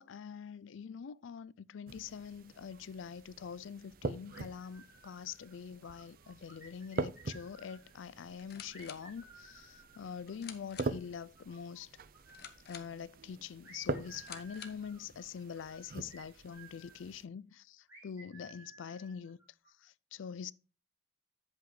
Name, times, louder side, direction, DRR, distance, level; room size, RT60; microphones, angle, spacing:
voice 1, 0.0-11.9 12.7-19.4 19.8-20.5, left 7 dB, 80° left, 0.4 m, -45 dB
sound 1, 1.9-17.2, right 3 dB, 45° right, 0.5 m, -44 dB
sound 2, 4.3-5.5 5.8-7.9 8.7-11.8 12.1-12.9 13.6-17.0 17.9-19.7, right 2 dB, 15° right, 5.3 m, -57 dB
sound 3, 8.3-15.0, left 8 dB, 50° left, 1.0 m, -53 dB
8.1 x 8.0 x 3.2 m
head